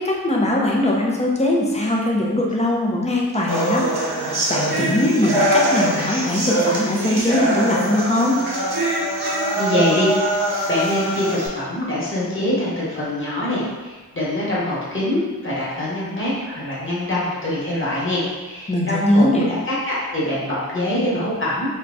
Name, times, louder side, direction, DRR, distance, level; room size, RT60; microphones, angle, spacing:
voice 1, 0.0-3.8 4.5-8.4 18.7-19.4, left 1 dB, 15° left, -2 dB, 0.7 m, -20 dB
sound 1, 3.5-11.5, right 1 dB, 90° right, 0.8 m, -22 dB
voice 2, 9.6-10.1 10.7-21.7, left 1 dB, 35° left, -8 dB, 1.3 m, -24 dB
3.0 x 2.3 x 3.8 m, 1.3 s
wide cardioid pair, 60°, 37 cm